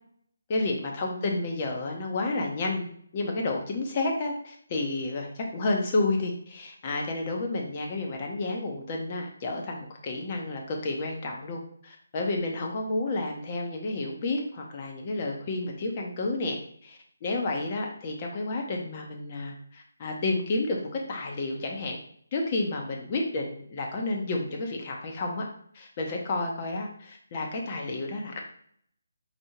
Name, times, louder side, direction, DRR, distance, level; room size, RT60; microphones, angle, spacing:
voice 1, 0.5-22.0 22.3-25.5 25.7-28.4, left 2 dB, 35° left, 1 dB, 0.9 m, -31 dB
4.2 x 2.7 x 4.5 m, 0.63 s
figure-of-eight pair, 150°, 0 cm